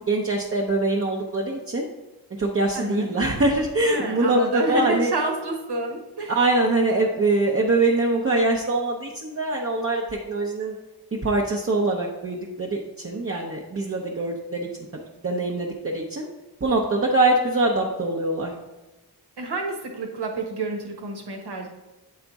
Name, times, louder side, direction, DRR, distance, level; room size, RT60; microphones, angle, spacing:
voice 1, 0.1-1.9 2.4-5.1 6.3-10.8 11.2-14.7 15.2-16.3 16.6-18.5, right 2 dB, 35° right, -2 dB, 0.7 m, -23 dB
voice 2, 2.7-3.1 3.8-6.4 19.4-21.7, right 3 dB, 85° right, 1 dB, 1.3 m, -29 dB
8.7 x 3.5 x 4.0 m, 1.1 s
wide cardioid pair, 110°, 39 cm